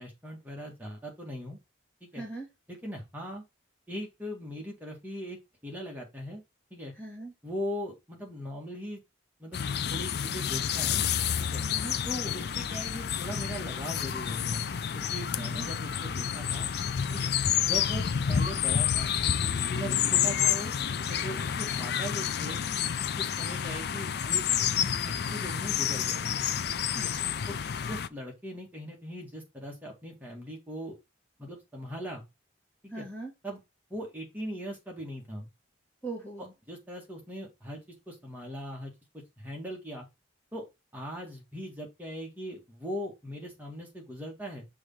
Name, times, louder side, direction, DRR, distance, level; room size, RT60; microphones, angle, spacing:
voice 1, 0.0-1.6 2.0-2.2 2.7-3.4 3.9-6.4 6.7-6.9 7.4-9.0 9.4-9.6 9.9-11.0 11.4-11.6 12.1-16.7 17.1-17.3 17.6-19.1 19.7-20.7 21.0-22.6 23.2-24.4 25.1-26.4 26.9-27.1 27.5-27.6 27.8-31.0 31.4-32.2 32.8-33.0 33.4-33.6 33.9-35.5 36.4-37.8 38.1-40.1 40.5-40.6 40.9-44.6, equal, 10° right, -1 dB, 1.9 m, -40 dB
voice 2, 2.1-2.5 7.0-7.3 11.6-11.9 15.4-15.7 26.9-27.4 32.9-33.3 36.0-36.5, right 2 dB, 10° left, -1 dB, 1.7 m, -40 dB
sound 1, 9.5-28.1, left 8 dB, 55° left, 0.4 m, -29 dB
6.4 x 3.6 x 5.6 m, 0.23 s
head